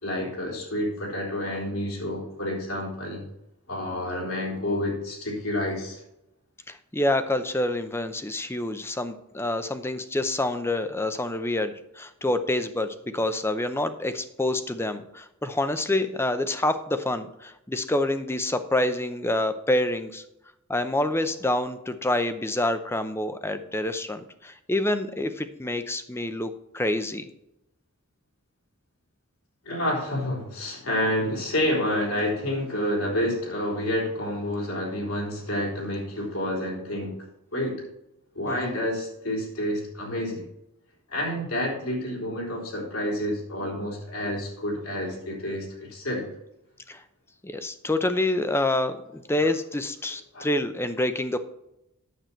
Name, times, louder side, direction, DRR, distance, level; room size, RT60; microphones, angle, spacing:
voice 1, 0.0-3.2 3.7-6.0 29.6-37.1 37.5-37.8 38.3-40.4 41.1-46.2 50.3-50.5, left 1 dB, 75° left, -3 dB, 4.0 m, -29 dB
voice 2, 6.7-20.2 20.7-27.2 38.5-38.8 46.9-47.0 47.4-51.4, left 1 dB, 10° left, 10 dB, 0.6 m, -27 dB
9.3 x 7.5 x 4.4 m, 0.87 s
head